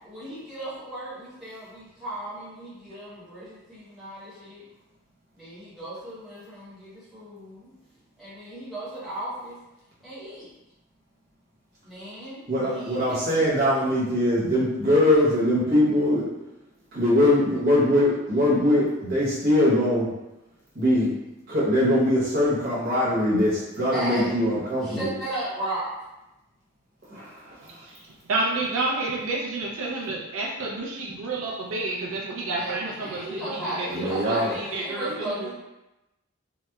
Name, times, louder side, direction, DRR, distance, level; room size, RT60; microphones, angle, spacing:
voice 1, 0.0-4.6 5.3-7.7 8.2-9.6 10.0-10.5 11.8-13.2 23.9-24.5 24.8-25.9 32.5-35.5, right 1 dB, ahead, -12 dB, 0.9 m, -35 dB
voice 2, 12.5-16.2 16.9-20.1 20.7-21.1 21.5-25.1 27.1-27.7 33.9-34.5, left 1 dB, 45° right, -8 dB, 0.9 m, -22 dB
voice 3, 28.3-35.5, right 2 dB, 85° right, -2 dB, 0.4 m, -30 dB
2.9 x 2.0 x 2.2 m, 0.96 s
head